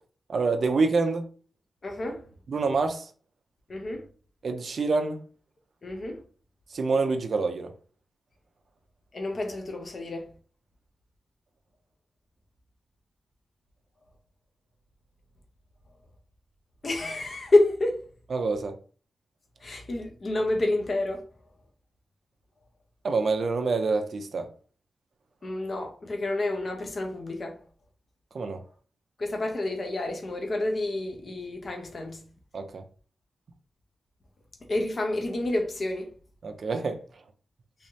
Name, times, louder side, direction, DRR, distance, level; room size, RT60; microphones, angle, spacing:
voice 1, 0.3-1.2 2.5-3.1 4.4-5.2 6.7-7.7 18.3-18.8 23.0-24.5 28.3-28.6 32.5-32.8 36.4-37.0, right 4 dB, 50° right, 0.5 m, -26 dB
voice 2, 1.8-2.2 3.7-4.0 5.8-6.2 9.1-10.3 16.8-18.0 19.6-21.2 25.4-27.6 29.2-32.2 34.7-36.1, left 2 dB, 35° left, 0.6 m, -28 dB
3.4 x 3.1 x 2.8 m
wide cardioid pair, 175°, 0 cm